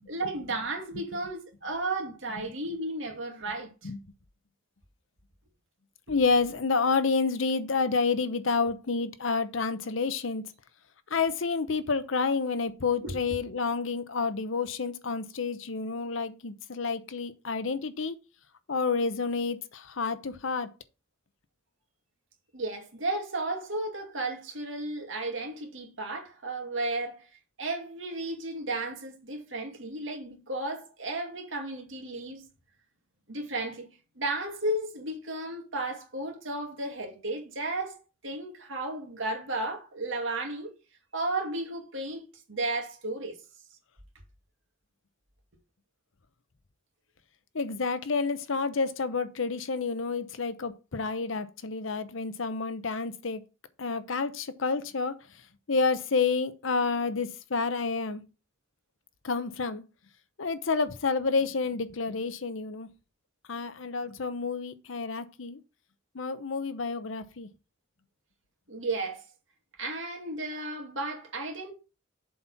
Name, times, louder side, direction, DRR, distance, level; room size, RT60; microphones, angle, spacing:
voice 1, 0.1-3.9 6.1-6.2 13.0-13.1 22.5-27.3 27.6-32.4 33.3-33.9 34.2-40.7 41.1-43.4 68.7-69.3 69.8-71.7, right 2 dB, 75° right, 2.3 m, -34 dB
voice 2, 6.1-10.4 11.1-18.1 18.7-20.7 47.5-53.4 53.8-55.1 55.7-58.2 59.2-59.8 60.4-62.9 63.5-65.6 66.1-67.5, left 4 dB, 75° left, 0.8 m, -29 dB
7.4 x 4.3 x 5.7 m
head